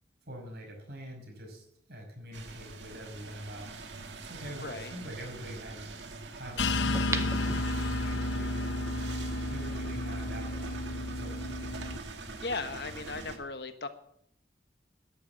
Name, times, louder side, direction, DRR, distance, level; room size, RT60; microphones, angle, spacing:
voice 1, 0.3-3.7 4.3-5.9 6.3-8.8 9.5-10.8 11.1-11.6, equal, 65° right, 1 dB, 5.9 m, -44 dB
sound 1, 2.3-13.4, right 3 dB, 85° right, 2.0 m, -44 dB
voice 2, 4.6-4.9 12.4-13.9, left 3 dB, 65° left, 9 dB, 1.3 m, -37 dB
sound 2, 6.6-12.0, left 2 dB, 85° left, 1.0 m, -32 dB
sound 3, 6.9-8.3 8.8-8.9, right 3 dB, 15° right, 0.7 m, -36 dB
12.0 x 10.5 x 7.5 m, 0.71 s
head